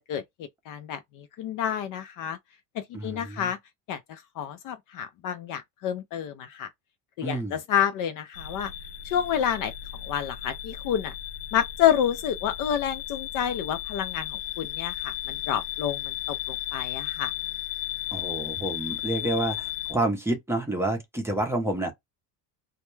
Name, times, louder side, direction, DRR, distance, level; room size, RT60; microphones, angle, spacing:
voice 1, 0.1-2.4 2.7-3.6 3.9-6.7 7.2-8.7 9.0-9.7 10.0-11.1 11.5-17.3, left 9 dB, 50° left, 0.5 m, -29 dB
voice 2, 2.9-3.5 7.2-7.5 18.1-21.9, right 1 dB, 5° right, 0.6 m, -29 dB
sound 1, 8.3-19.9, left 13 dB, 85° left, 0.8 m, -35 dB
2.2 x 2.2 x 3.0 m
cardioid pair, 140°, 41 cm